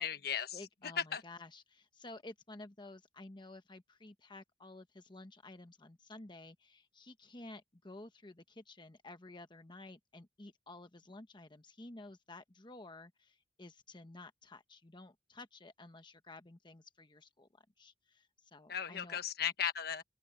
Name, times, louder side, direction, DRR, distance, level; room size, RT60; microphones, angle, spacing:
voice 1, 0.0-0.6 1.1-1.2 18.7-20.0, left 8 dB, 60° left, 1.3 m, -36 dB
voice 2, 0.5-19.2, left 2 dB, 25° left, 1.1 m, -53 dB
open air
head